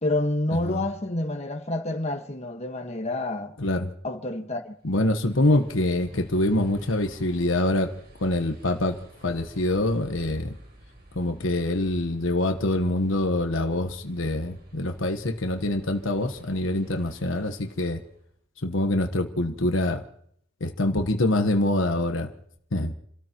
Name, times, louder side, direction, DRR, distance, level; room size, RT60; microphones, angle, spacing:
voice 1, 0.0-3.5 4.0-4.7, left 2 dB, 35° left, 1.5 m, -28 dB
voice 2, 3.6-3.9 4.8-7.9 8.2-10.5 11.1-18.0 18.6-20.0 20.6-22.3 22.7-22.9, left 1 dB, 75° left, 1.2 m, -25 dB
sound 1, 4.7-18.3, right 1 dB, 55° right, 4.7 m, -50 dB
29.5 x 13.5 x 3.0 m
head